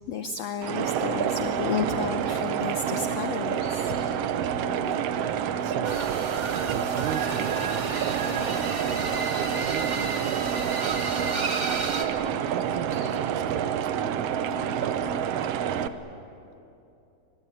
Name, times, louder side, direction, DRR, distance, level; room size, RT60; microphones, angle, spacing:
voice 1, 0.1-4.0, left 6 dB, 75° left, 9 dB, 1.5 m, -32 dB
sound 1, 0.6-15.9, right 8 dB, 90° right, 1.3 m, -28 dB
sound 2, 2.1-3.0 3.2-13.2, left 4 dB, 60° left, 5.7 m, -54 dB
voice 2, 5.2-6.3 6.7-8.8 9.3-11.3 12.1-15.2, right 9 dB, 70° right, 10 dB, 2.4 m, -38 dB
sound 3, 5.8-12.0, right 3 dB, 40° right, 1.0 m, -33 dB
24.0 x 22.0 x 9.9 m, 2.8 s
omnidirectional pair, 4.0 m